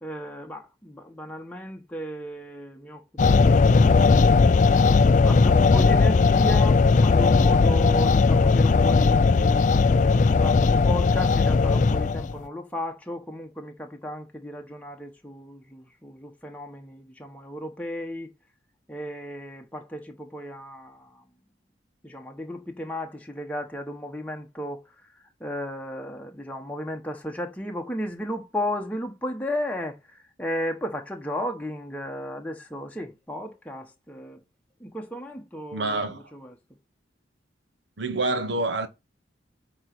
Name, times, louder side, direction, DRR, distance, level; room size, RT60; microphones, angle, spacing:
voice 1, 0.0-4.0 5.2-18.3 18.9-21.2 22.0-24.8 25.4-34.4 34.8-36.5, left 1 dB, 5° left, 1.0 m, -34 dB
sound 1, 3.2-12.4, left 4 dB, 40° left, 0.3 m, -18 dB
voice 2, 35.7-36.2 38.0-38.9, right 2 dB, 65° right, 1.0 m, -27 dB
8.7 x 3.0 x 5.9 m
head